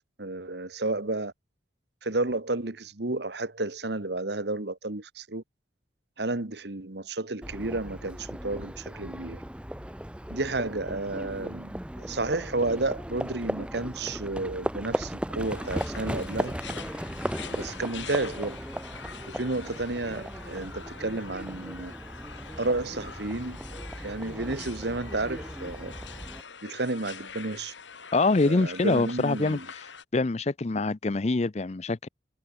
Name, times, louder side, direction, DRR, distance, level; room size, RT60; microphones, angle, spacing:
voice 1, 0.2-1.3 2.0-5.4 6.2-9.4 10.3-16.6 17.5-18.6 19.3-21.9 22.6-23.6 24.0-25.9 26.6-27.7 28.4-29.7, right 2 dB, 65° right, 1.6 m, -31 dB
Livestock farm animals working animals, 7.4-26.4, equal, 5° right, 1.1 m, -37 dB
sound 1, 15.4-30.0, left 6 dB, 85° left, 3.9 m, -45 dB
voice 2, 28.1-29.8 30.1-32.1, left 3 dB, 35° left, 0.6 m, -25 dB
head